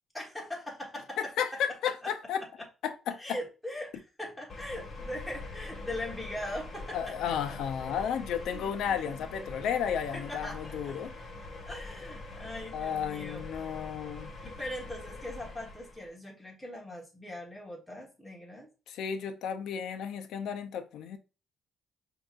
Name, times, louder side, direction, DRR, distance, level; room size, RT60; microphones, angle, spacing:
voice 1, 0.1-1.3 1.8-2.1 3.2-7.1 7.5-7.6 7.9-8.0 8.5-9.3 10.1-11.0 11.7-13.5 14.4-18.7, left 1 dB, 5° left, 1.3 m, -41 dB
voice 2, 1.2-2.4 2.8-3.4 6.9-11.1 12.7-14.3 18.9-21.2, left 8 dB, 80° left, 0.6 m, -33 dB
sound 1, 4.5-16.1, left 2 dB, 40° left, 1.4 m, -43 dB
5.4 x 2.9 x 2.4 m
cardioid pair, 90°, 0 cm